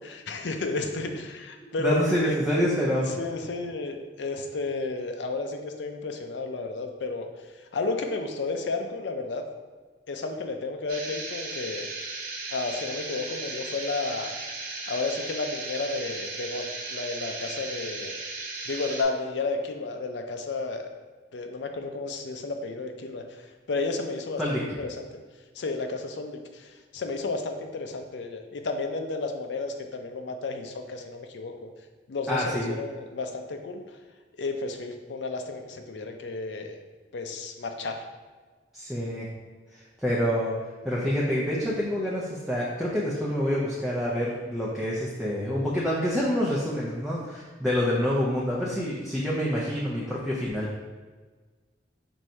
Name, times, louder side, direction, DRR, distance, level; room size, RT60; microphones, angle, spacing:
voice 1, 0.0-2.4 3.0-7.3 7.7-9.4 10.1-11.9 12.5-14.3 14.9-18.2 18.7-20.9 21.3-23.2 23.7-25.1 25.6-31.7 32.1-33.8 34.4-36.7 37.1-38.0, left 3 dB, 70° left, 4 dB, 0.5 m, -32 dB
voice 2, 1.8-3.1 24.4-24.6 32.3-32.7 38.7-39.3 39.7-40.6 40.8-50.7, equal, ahead, -6 dB, 0.5 m, -27 dB
sound 1, 10.9-19.0, right 3 dB, 55° right, 0.8 m, -36 dB
4.7 x 2.6 x 4.2 m, 1.4 s
head